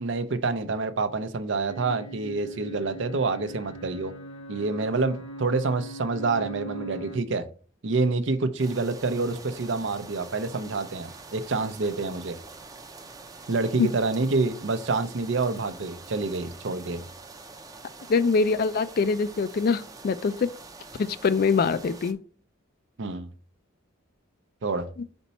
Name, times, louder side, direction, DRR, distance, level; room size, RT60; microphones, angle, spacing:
voice 1, 0.0-4.1 4.5-7.5 7.8-12.4 13.5-17.0 23.0-23.3 24.6-24.9, right 3 dB, 65° right, 0.6 m, -27 dB
sound 1, 1.7-7.2, right 1 dB, 80° left, 0.7 m, -40 dB
sound 2, 8.6-22.1, right 3 dB, 20° right, 0.6 m, -45 dB
voice 2, 18.1-20.5 21.0-22.2, left 4 dB, 50° left, 0.4 m, -24 dB
4.4 x 4.1 x 5.5 m
head